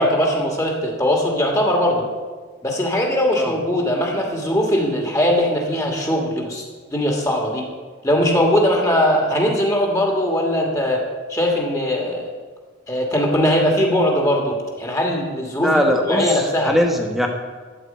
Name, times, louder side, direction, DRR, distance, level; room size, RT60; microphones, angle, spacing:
voice 1, 0.0-2.0 2.6-6.6 6.9-7.6 8.0-11.0 11.3-12.3 12.9-15.7 16.1-16.7, equal, 15° left, 0 dB, 1.5 m, -20 dB
voice 2, 15.6-17.3, equal, ahead, 2 dB, 1.1 m, -20 dB
12.5 x 4.4 x 8.5 m, 1.5 s
head